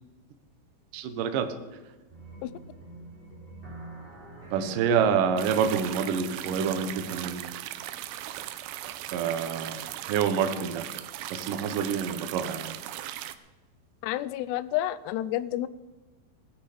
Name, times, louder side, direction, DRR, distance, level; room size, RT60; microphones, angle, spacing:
voice 1, 0.9-1.5 4.5-7.6 9.1-10.9 11.3-12.7, right 7 dB, 70° right, 7 dB, 2.1 m, -27 dB
sound 1, 2.1-7.3, right 1 dB, 10° right, 3.8 m, -45 dB
sound 2, 5.4-13.3, right 13 dB, 85° right, 2.3 m, -38 dB
voice 2, 14.0-15.7, left 14 dB, 80° left, 16 dB, 2.6 m, -30 dB
17.5 x 12.0 x 5.1 m, 1.2 s
omnidirectional pair, 5.2 m